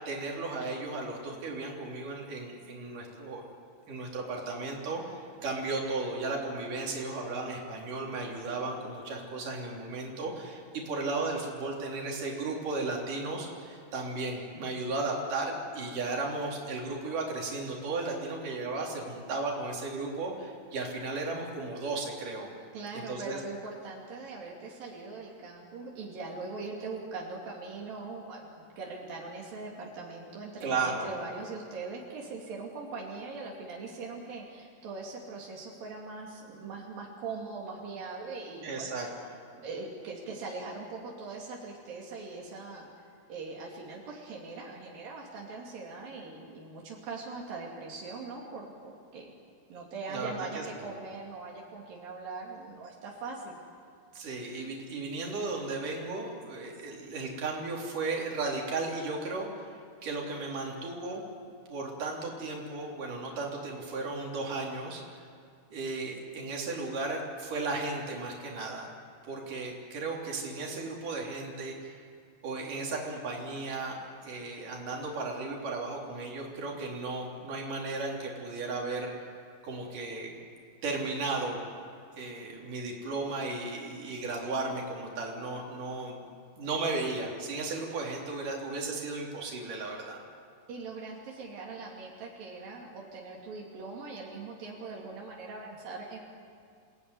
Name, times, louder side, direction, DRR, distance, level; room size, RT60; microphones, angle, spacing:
voice 1, 0.0-3.4 3.9-22.5 22.9-23.4 30.6-31.1 38.6-39.3 50.1-50.8 54.1-61.2 61.7-65.2 65.7-68.9 69.2-72.0 72.4-79.1 79.6-80.3 80.8-81.7 82.2-86.2 86.6-90.2, right 3 dB, 70° right, -1 dB, 5.0 m, -35 dB
voice 2, 22.7-39.0 39.6-42.9 43.3-49.3 49.7-53.6 90.7-96.2, right 3 dB, 85° right, -2 dB, 4.4 m, -41 dB
28.5 x 19.0 x 9.8 m, 2.2 s
omnidirectional pair, 3.9 m